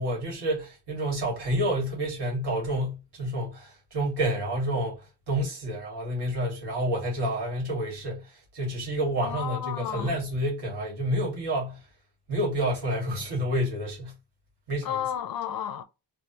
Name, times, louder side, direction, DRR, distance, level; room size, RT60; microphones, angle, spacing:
voice 1, 0.0-11.8 12.3-14.1 14.7-15.0, right 1 dB, 65° right, 1.8 m, -29 dB
voice 2, 9.2-10.2 14.8-15.8, left 9 dB, 55° left, 0.5 m, -32 dB
3.3 x 2.3 x 2.8 m
wide cardioid pair, 170°, 42 cm